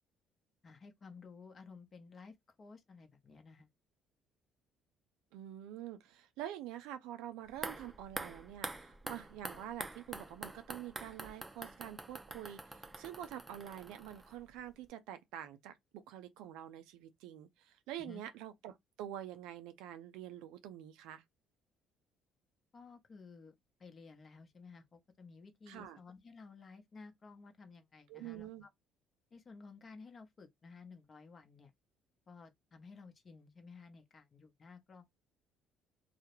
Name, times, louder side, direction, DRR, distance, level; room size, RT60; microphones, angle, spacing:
voice 1, 0.6-3.7 18.0-18.2 22.7-23.5 23.8-28.7 29.3-31.7 32.3-35.0, left 4 dB, 40° left, 0.7 m, -55 dB
voice 2, 5.3-21.2 25.7-26.0 28.1-28.7, right 11 dB, 80° right, 0.4 m, -47 dB
sound 1, 7.5-14.6 14.9-15.0, right 2 dB, 15° right, 0.4 m, -46 dB
2.2 x 2.0 x 3.0 m
supercardioid pair, 70°, 0 cm